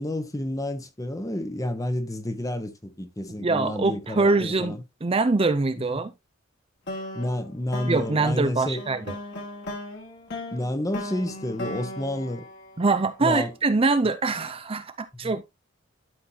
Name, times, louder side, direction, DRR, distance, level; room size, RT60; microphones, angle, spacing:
voice 1, 0.0-4.8 5.8-6.0 7.1-8.8 10.5-12.5 13.2-13.5 15.2-15.3, left 1 dB, 15° left, 1.0 m, -30 dB
voice 2, 3.4-6.1 7.9-9.1 12.8-15.4, right 3 dB, 30° right, 0.5 m, -24 dB
sound 1, 6.9-13.3, left 1 dB, 55° left, 3.3 m, -37 dB
12.5 x 5.3 x 2.8 m
head